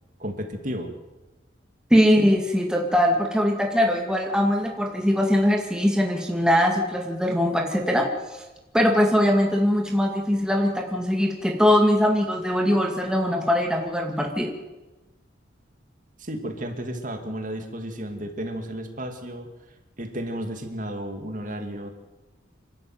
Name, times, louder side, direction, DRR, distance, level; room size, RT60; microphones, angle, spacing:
voice 1, 0.2-0.9 16.2-19.5 20.0-21.9, right 1 dB, 40° right, 5 dB, 2.6 m, -33 dB
voice 2, 1.9-8.4 8.7-14.5, equal, 5° right, 1 dB, 2.2 m, -21 dB
28.0 x 12.0 x 9.2 m, 1.1 s
head